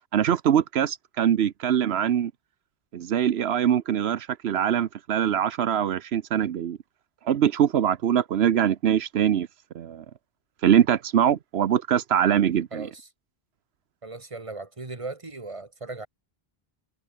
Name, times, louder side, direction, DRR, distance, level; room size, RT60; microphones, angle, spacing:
voice 1, 0.1-2.3 2.9-6.8 7.2-9.5 9.7-10.0 10.6-12.9, right 9 dB, 85° right, 1.0 m, -23 dB
voice 2, 12.7-13.1 14.0-16.1, right 3 dB, 30° right, 2.0 m, -37 dB
omnidirectional pair, 1.0 m